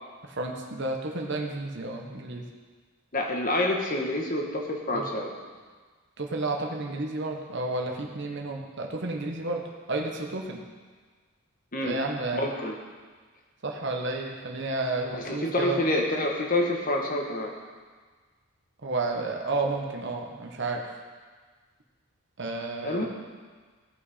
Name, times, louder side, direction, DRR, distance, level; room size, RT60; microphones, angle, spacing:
voice 1, 0.2-2.5 4.9-5.0 6.2-10.6 11.8-12.4 13.6-15.8 18.8-20.8 22.4-23.0, right 2 dB, 50° right, 1 dB, 1.1 m, -31 dB
voice 2, 3.1-5.3 11.7-12.0 12.3-12.8 15.1-17.5 22.8-23.0, left 1 dB, 40° left, 1 dB, 1.3 m, -27 dB
17.0 x 5.8 x 4.2 m, 1.5 s
head